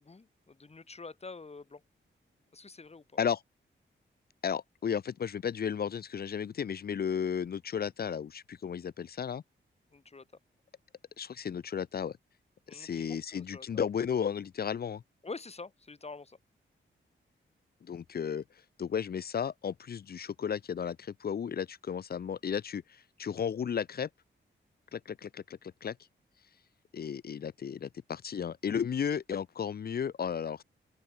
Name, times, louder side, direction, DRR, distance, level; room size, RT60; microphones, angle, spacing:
voice 1, 0.0-1.8 2.5-3.0 9.9-10.2 12.7-13.8 15.2-16.4, left 3 dB, 30° left, 2.4 m, -46 dB
voice 2, 4.4-9.4 11.2-12.2 12.7-15.0 17.8-18.4 18.8-24.1 24.9-26.0 26.9-30.6, left 7 dB, 50° left, 0.5 m, -34 dB
open air
wide cardioid pair, 105°, 20 cm